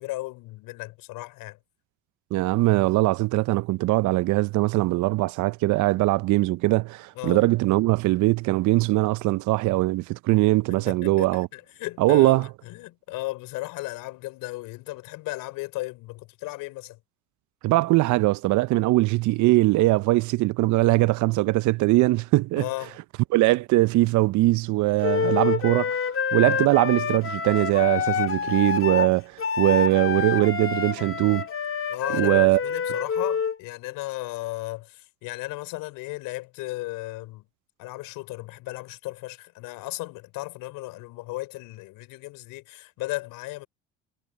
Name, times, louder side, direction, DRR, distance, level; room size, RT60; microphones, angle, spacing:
voice 1, 0.0-1.6 7.1-7.4 10.7-17.0 22.6-23.0 31.9-37.4 37.8-43.7, left 20 dB, 65° left, 4.0 m, -35 dB
voice 2, 2.3-11.5 12.0-12.5 17.6-22.7 23.3-26.0 26.3-31.5 32.1-32.6, right 19 dB, 55° right, 0.8 m, -21 dB
Wind instrument woodwind instrument, 25.0-33.6, left 6 dB, 35° left, 2.3 m, -27 dB
hypercardioid pair, 65°, 35 cm